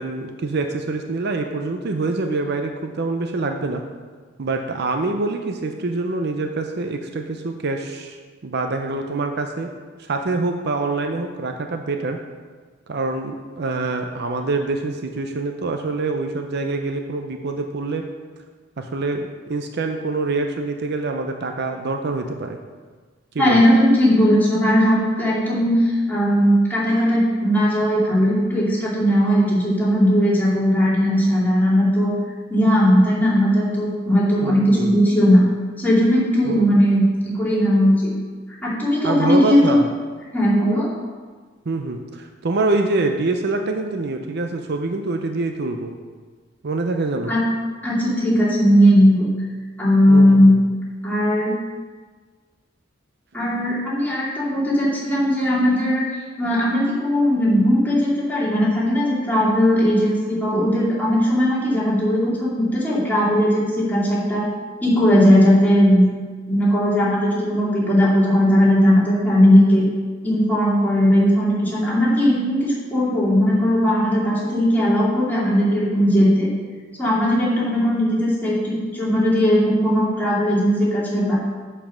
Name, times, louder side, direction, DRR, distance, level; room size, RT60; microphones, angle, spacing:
voice 1, 0.0-3.8 4.4-9.7 10.0-12.2 12.9-18.1 18.8-22.6 23.3-23.6 34.4-35.0 36.5-36.7 39.0-39.9 41.7-45.9 46.6-47.3 50.1-50.6, right 3 dB, 60° right, 5 dB, 0.6 m, -25 dB
voice 2, 23.4-32.1 32.5-35.4 35.8-38.1 38.6-39.8 40.3-40.9 47.3-47.4 47.8-49.3 49.8-50.5 51.0-51.5 53.3-56.0 56.4-64.5 64.8-66.1 66.5-69.8 70.2-76.5 77.0-81.4, equal, 10° left, -8 dB, 2.7 m, -18 dB
7.2 x 5.6 x 6.3 m, 1.5 s
head